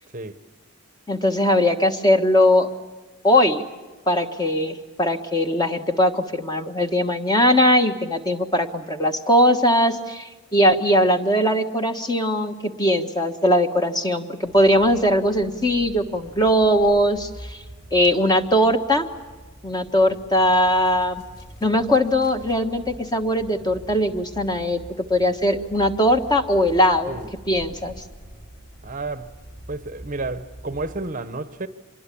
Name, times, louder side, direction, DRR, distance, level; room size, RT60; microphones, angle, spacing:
voice 1, 1.1-2.7 3.2-3.7 4.1-17.6 17.9-19.1 19.6-21.2 21.6-27.2 27.5-27.9, equal, 20° left, 1.4 m, -20 dB
sound 1, 14.4-31.1, right 1 dB, 50° left, 5.1 m, -44 dB
voice 2, 28.8-29.3 29.7-31.7, right 2 dB, 35° right, 0.9 m, -31 dB
26.0 x 21.5 x 8.4 m
head